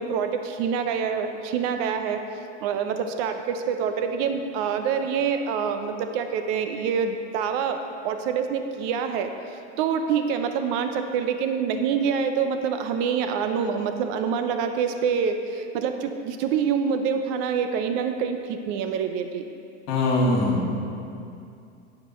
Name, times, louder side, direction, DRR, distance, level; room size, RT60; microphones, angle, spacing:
voice 1, 0.0-2.2 2.6-9.3 9.8-19.4, right 6 dB, 55° right, 7 dB, 0.7 m, -26 dB
voice 2, 19.9-20.7, left 2 dB, 50° left, -2 dB, 2.2 m, -22 dB
15.5 x 5.2 x 3.1 m, 2.5 s
hypercardioid pair, 105°, 36 cm